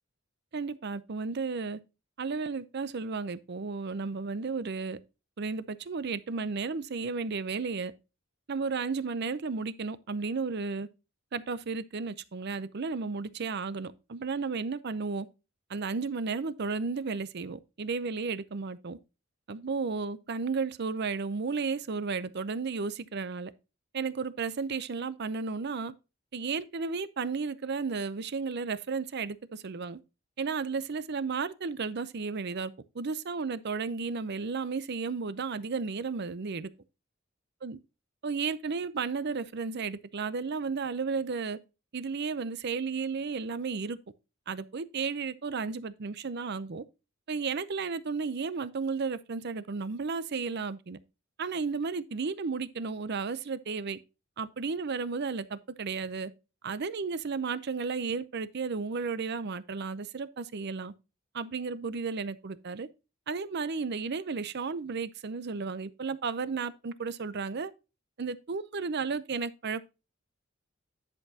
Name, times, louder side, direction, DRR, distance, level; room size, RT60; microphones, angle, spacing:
voice 1, 0.5-1.8 2.2-5.0 5.4-7.9 8.5-10.9 11.3-15.3 15.7-19.0 19.5-23.5 23.9-25.9 26.3-30.0 30.4-36.7 37.6-37.8 38.2-41.6 41.9-44.0 44.5-46.8 47.3-51.0 51.4-54.0 54.4-56.3 56.6-60.9 61.3-62.9 63.3-67.7 68.2-69.8, right 4 dB, 55° right, 0.6 m, -33 dB
10.5 x 6.8 x 2.8 m
head